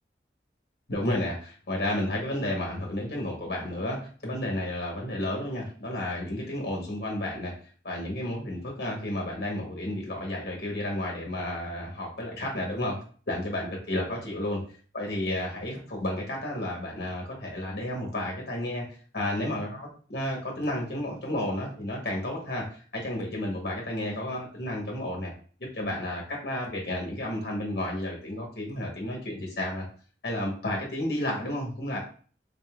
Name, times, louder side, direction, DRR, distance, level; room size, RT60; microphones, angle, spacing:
voice 1, 0.9-7.6 7.8-14.7 14.9-18.9 19.1-25.3 25.7-29.8 30.2-32.0, left 1 dB, 60° left, -1 dB, 1.1 m, -32 dB
3.7 x 3.7 x 2.3 m, 0.42 s
head